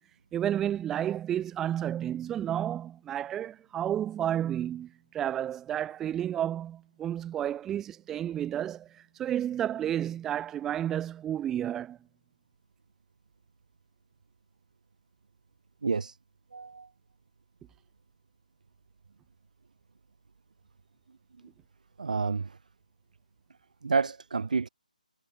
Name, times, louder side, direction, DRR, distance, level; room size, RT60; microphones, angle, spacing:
voice 1, 0.3-12.0, right 10 dB, 10° right, 2.2 m, -31 dB
voice 2, 15.8-16.1 16.5-16.9 22.0-22.5 23.8-24.7, right 4 dB, 65° right, 2.1 m, -29 dB
hypercardioid pair, 170°, 5 cm